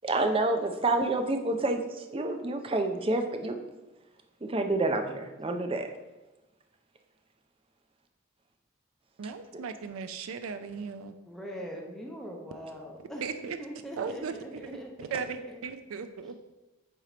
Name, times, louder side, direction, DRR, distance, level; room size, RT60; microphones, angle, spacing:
voice 1, 0.0-3.6 4.4-5.9, right 2 dB, 25° right, 6 dB, 0.5 m, -28 dB
voice 2, 9.2-11.2 13.2-13.6 14.0-14.7 15.0-15.4 15.6-16.4, right 6 dB, 85° right, 9 dB, 0.4 m, -37 dB
voice 3, 11.3-15.2 15.5-15.6, equal, ahead, -1 dB, 0.8 m, -42 dB
8.0 x 2.9 x 4.9 m, 1.1 s
head